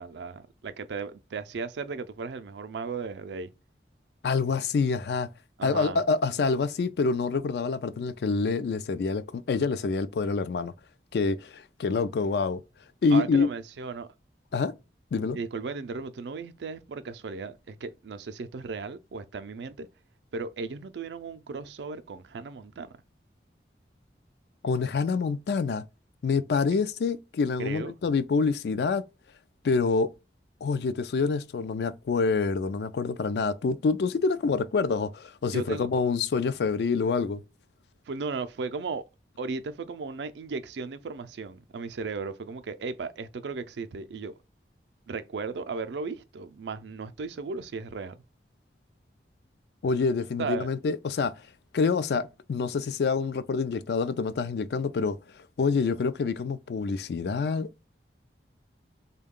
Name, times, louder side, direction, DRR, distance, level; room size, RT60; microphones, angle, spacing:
voice 1, 0.0-3.5 5.6-6.0 13.1-14.1 15.3-19.9 20.3-22.9 27.6-27.9 35.5-36.0 38.1-39.0 39.4-44.4 45.1-48.2 50.4-50.7, right 4 dB, 80° right, 0.4 m, -36 dB
voice 2, 4.2-5.3 5.6-10.7 11.1-12.6 13.0-13.5 14.5-14.7 15.1-15.4 24.6-25.8 26.2-29.0 29.6-30.1 30.6-37.4 49.8-51.3 51.7-55.2 55.6-57.9, left 4 dB, 70° left, 0.3 m, -26 dB
3.6 x 2.2 x 3.6 m
head